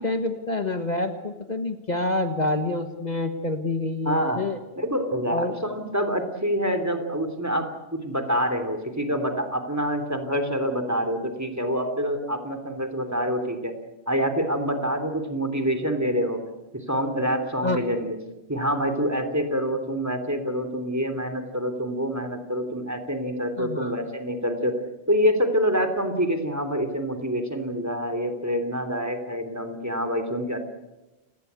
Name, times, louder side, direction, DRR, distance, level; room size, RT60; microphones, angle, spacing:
voice 1, 0.0-4.6 5.3-5.5 17.6-17.8 23.6-23.9, left 2 dB, 45° left, 7 dB, 1.6 m, -27 dB
voice 2, 4.0-4.4 4.7-13.7 14.1-16.4 16.7-18.2 18.5-24.7 25.1-30.6, equal, 15° right, 6 dB, 3.2 m, -26 dB
30.0 x 19.0 x 8.2 m, 1.0 s
omnidirectional pair, 1.1 m